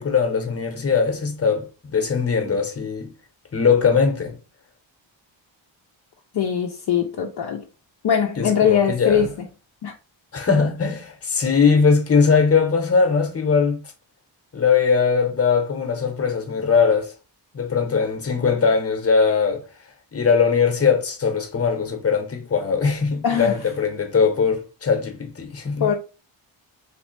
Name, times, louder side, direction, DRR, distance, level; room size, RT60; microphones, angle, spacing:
voice 1, 0.0-3.1 3.5-4.4 8.4-9.3 10.3-13.8 14.5-17.1 17.5-19.6 20.1-25.9, left 5 dB, 30° left, 0.9 m, -20 dB
voice 2, 6.3-7.6 8.0-9.3 9.8-9.9 23.2-23.5 25.8-25.9, left 8 dB, 60° left, 0.6 m, -21 dB
3.3 x 3.1 x 3.2 m
wide cardioid pair, 150°, 46 cm